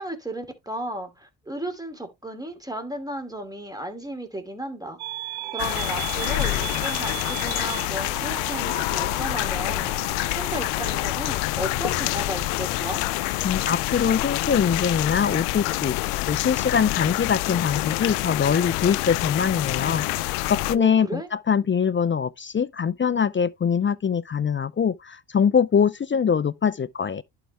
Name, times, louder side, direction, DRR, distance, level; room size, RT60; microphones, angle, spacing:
voice 1, 0.0-5.0 5.5-10.1 10.4-13.0 20.7-21.3, right 1 dB, 5° right, 2.7 m, -34 dB
sound 1, 5.0-14.4, right 14 dB, 80° right, 0.9 m, -38 dB
sound 2, 5.6-20.7, left 19 dB, 85° left, 0.6 m, -27 dB
voice 2, 13.4-16.0 16.3-27.2, left 7 dB, 25° left, 0.4 m, -23 dB
11.0 x 4.8 x 3.3 m
supercardioid pair, 60°, 50 cm